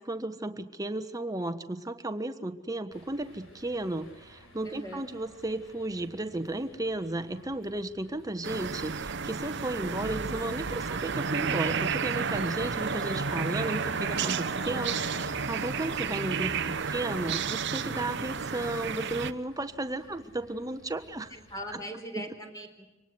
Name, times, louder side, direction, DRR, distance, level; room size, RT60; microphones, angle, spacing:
voice 1, 0.0-21.3 21.7-21.8 22.1-22.3, right 2 dB, 20° right, 10 dB, 1.4 m, -34 dB
sound 1, 2.9-21.8, left 1 dB, 80° left, 6.6 m, -49 dB
voice 2, 4.6-5.1 13.5-14.1 16.4-16.9 21.3-22.9, equal, 20° left, 4 dB, 4.0 m, -42 dB
sound 2, 8.4-19.3, right 5 dB, 65° right, 1.0 m, -31 dB
25.5 x 19.5 x 8.1 m, 1.0 s
head